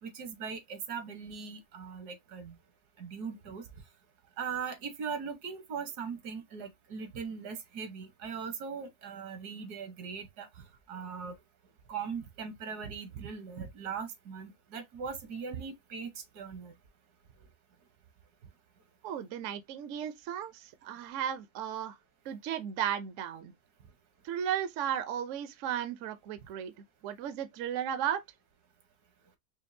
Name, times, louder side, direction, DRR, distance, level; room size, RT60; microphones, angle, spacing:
voice 1, 0.0-2.6 3.0-3.6 4.4-11.3 11.9-16.7, right 6 dB, 80° right, 1.5 m, -40 dB
voice 2, 19.0-22.0 22.2-23.5 24.2-28.2, right 9 dB, 65° right, 0.8 m, -35 dB
5.1 x 2.3 x 2.6 m
omnidirectional pair, 1.6 m